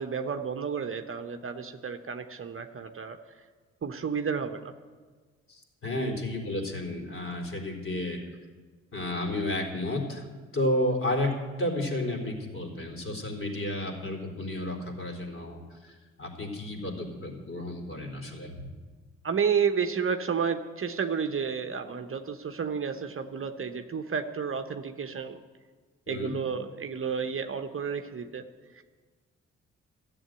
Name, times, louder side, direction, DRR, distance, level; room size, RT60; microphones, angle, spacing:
voice 1, 0.0-3.2 3.8-4.7 5.9-6.2 19.2-25.4 26.1-28.4 28.7-28.8, right 6 dB, 40° right, 6 dB, 1.0 m, -31 dB
voice 2, 5.5-8.2 8.9-10.3 10.5-18.7 26.1-26.3, left 1 dB, 40° left, 1 dB, 4.0 m, -32 dB
14.0 x 7.9 x 9.2 m, 1.4 s
hypercardioid pair, 40°, 34 cm